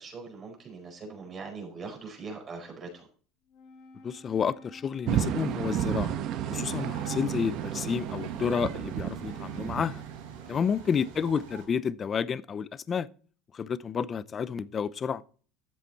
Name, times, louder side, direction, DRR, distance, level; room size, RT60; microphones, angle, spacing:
voice 1, 0.0-3.1 10.4-10.6, right 4 dB, 30° right, 4.9 m, -41 dB
Wind instrument woodwind instrument, 3.4-8.2, left 2 dB, 60° left, 2.7 m, -51 dB
voice 2, 4.0-6.2 6.5-10.0 10.5-13.1 13.5-15.2, left 6 dB, 30° left, 0.6 m, -30 dB
sound 1, 5.1-10.7, right 10 dB, 55° right, 1.1 m, -32 dB
sound 2, 6.6-11.7, right 5 dB, 85° right, 4.6 m, -46 dB
13.5 x 7.5 x 4.2 m
supercardioid pair, 110°, 0 cm